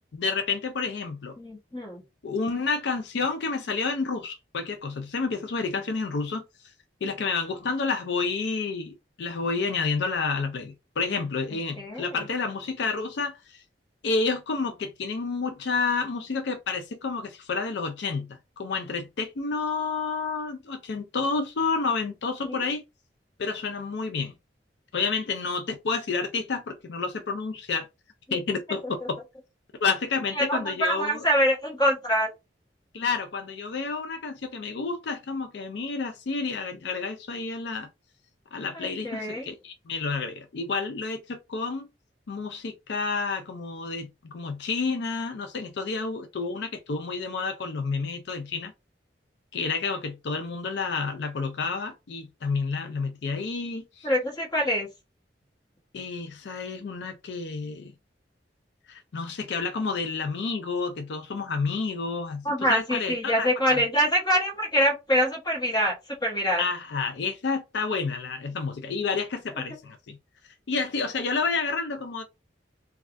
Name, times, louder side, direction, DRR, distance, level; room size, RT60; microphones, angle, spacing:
voice 1, 0.1-1.4 2.2-6.7 7.0-13.6 14.0-22.8 23.4-24.3 24.9-27.9 28.3-29.2 29.8-31.3 32.9-37.9 38.5-41.9 42.3-48.7 49.5-54.1 55.9-57.9 58.9-63.8 66.6-70.2 70.4-72.2, left 4 dB, 70° left, 0.4 m, -30 dB
voice 2, 1.4-2.0 11.8-12.2 22.4-22.6 30.4-32.3 38.7-39.5 54.0-54.9 62.4-66.6, equal, 25° left, 1.1 m, -25 dB
3.3 x 2.3 x 2.5 m
head